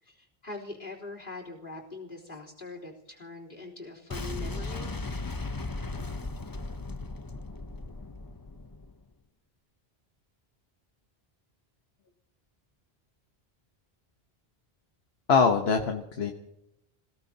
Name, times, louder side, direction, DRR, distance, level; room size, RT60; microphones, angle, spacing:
voice 1, 0.0-4.9, left 2 dB, 55° left, 1 dB, 3.9 m, -42 dB
Boom, 4.1-9.0, left 3 dB, 25° left, 0.7 m, -37 dB
voice 2, 15.3-16.3, left 5 dB, 75° left, 4 dB, 1.4 m, -23 dB
28.0 x 17.0 x 2.9 m, 0.88 s
omnidirectional pair, 1.1 m